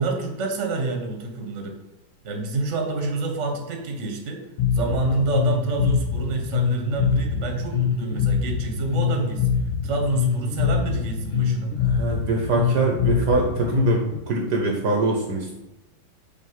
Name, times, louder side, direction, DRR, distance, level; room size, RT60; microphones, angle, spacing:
voice 1, 0.0-1.8 2.2-9.6 9.8-11.7, right 3 dB, 40° right, 2 dB, 1.4 m, -27 dB
Bass guitar, 4.6-14.2, left 7 dB, 75° left, 2.0 m, -24 dB
voice 2, 11.8-15.6, right 3 dB, 60° right, 0 dB, 1.4 m, -23 dB
6.3 x 4.5 x 5.5 m, 0.98 s
omnidirectional pair, 2.2 m